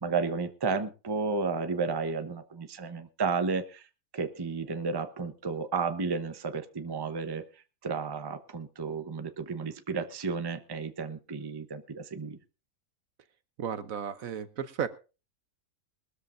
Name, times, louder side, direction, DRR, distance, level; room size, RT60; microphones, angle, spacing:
voice 1, 0.0-3.8 4.1-7.4 7.8-12.4, right 4 dB, 20° right, 8 dB, 0.8 m, -32 dB
voice 2, 13.6-14.9, right 8 dB, 65° right, 12 dB, 1.3 m, -34 dB
21.5 x 13.5 x 2.6 m, 0.32 s
omnidirectional pair, 1.6 m